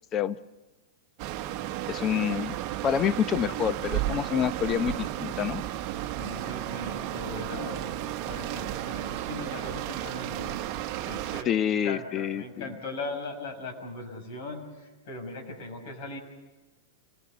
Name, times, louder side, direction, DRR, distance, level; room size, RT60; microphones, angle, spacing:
sound 1, 1.2-11.4, right 13 dB, 45° right, 1.0 m, -33 dB
voice 1, 1.9-2.6 2.8-5.6 11.5-12.6, left 9 dB, 30° left, 14 dB, 0.8 m, -27 dB
voice 2, 6.2-10.7 11.1-16.2, left 2 dB, 60° left, 3 dB, 5.8 m, -39 dB
26.5 x 18.0 x 6.9 m, 1.2 s
hypercardioid pair, 110°, 0 cm